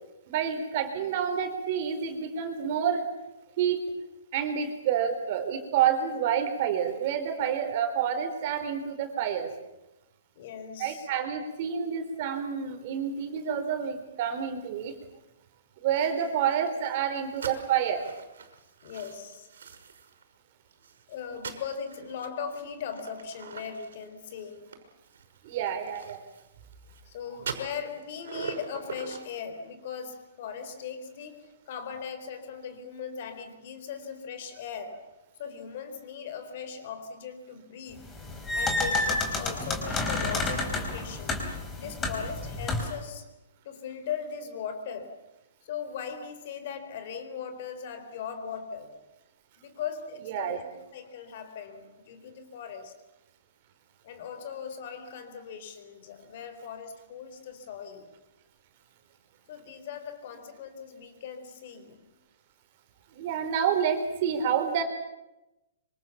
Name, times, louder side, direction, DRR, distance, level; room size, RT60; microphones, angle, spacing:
voice 1, 0.3-3.1 3.6-3.8 4.3-9.5 10.8-14.9 15.8-18.0 25.4-26.2 50.3-50.6 63.1-64.8, right 8 dB, 35° right, 6 dB, 4.4 m, -28 dB
voice 2, 10.4-11.1 18.8-19.5 21.1-24.8 27.1-35.1 35.4-38.1 38.5-41.4 41.8-43.3 43.6-45.2 45.6-49.0 49.6-52.9 54.0-58.1 59.5-62.1, left 7 dB, 40° left, 9 dB, 4.2 m, -39 dB
sound 1, 15.9-20.3 20.7-27.0 27.4-29.3, right 5 dB, 80° right, 6.0 m, -43 dB
sound 2, 38.1-43.0, left 2 dB, 10° left, 4.2 m, -30 dB
26.5 x 26.0 x 7.3 m, 0.95 s
hypercardioid pair, 170°, 0 cm